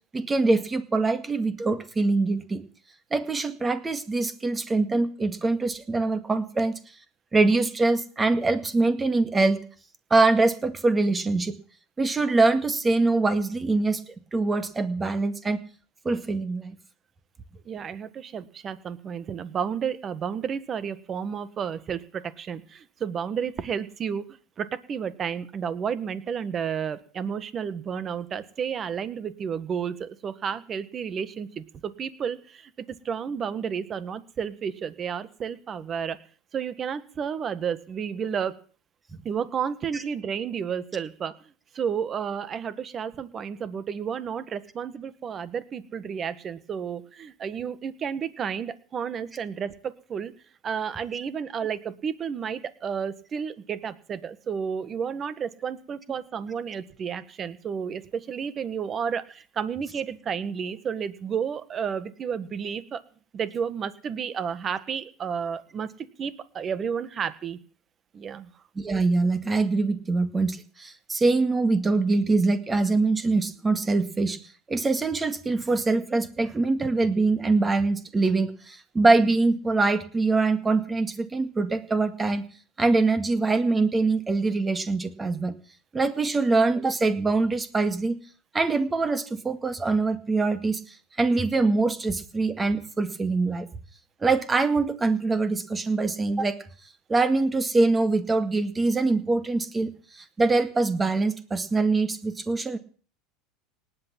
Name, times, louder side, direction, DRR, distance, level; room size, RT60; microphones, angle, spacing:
voice 1, 0.1-2.6 3.1-6.8 7.3-9.6 10.1-11.6 12.0-15.6 16.1-16.8 39.9-40.0 68.8-74.4 74.7-82.4 82.8-85.5 85.9-88.2 88.5-93.7 94.2-96.6 97.1-102.8, right 3 dB, 20° right, 10 dB, 1.9 m, -24 dB
voice 2, 17.6-36.2 36.5-38.5 39.2-41.3 41.7-50.3 50.6-63.0 63.3-67.6 68.1-68.5, right 7 dB, 35° right, 14 dB, 1.6 m, -31 dB
18.5 x 8.6 x 7.5 m, 0.42 s
supercardioid pair, 105°, 0 cm